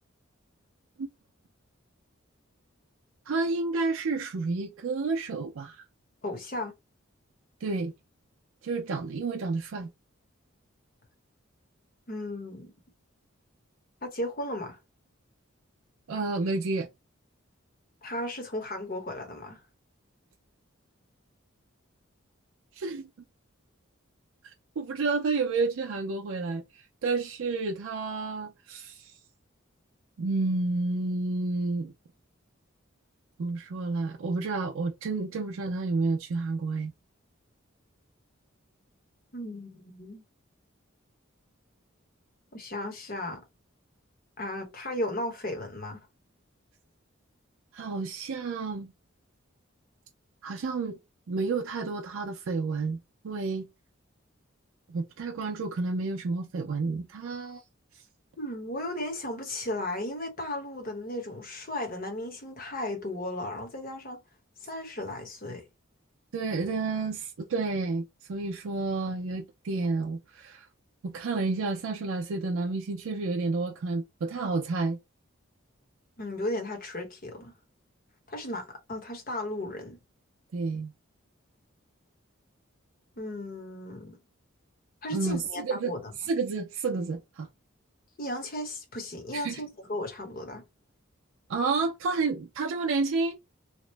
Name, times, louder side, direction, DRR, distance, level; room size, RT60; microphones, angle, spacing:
voice 1, 3.3-5.8 7.6-7.9 8.6-9.9 16.1-16.9 22.7-23.1 24.4-29.1 30.2-31.9 33.4-36.9 47.7-48.9 50.4-51.0 51.3-53.0 53.2-53.7 54.9-57.6 57.9-58.0 66.3-70.7 71.0-75.0 80.5-80.9 85.1-85.9 86.2-87.5 89.3-89.6 91.5-93.4, right 3 dB, 80° right, 0.4 m, -30 dB
voice 2, 6.2-6.7 12.1-12.7 14.0-14.8 18.0-19.6 39.3-40.2 42.5-43.4 44.4-46.0 58.4-64.2 64.6-65.6 76.2-77.5 78.3-80.0 83.2-84.2 85.0-86.1 88.2-90.6, left 1 dB, 45° left, 0.9 m, -35 dB
2.9 x 2.0 x 3.1 m
head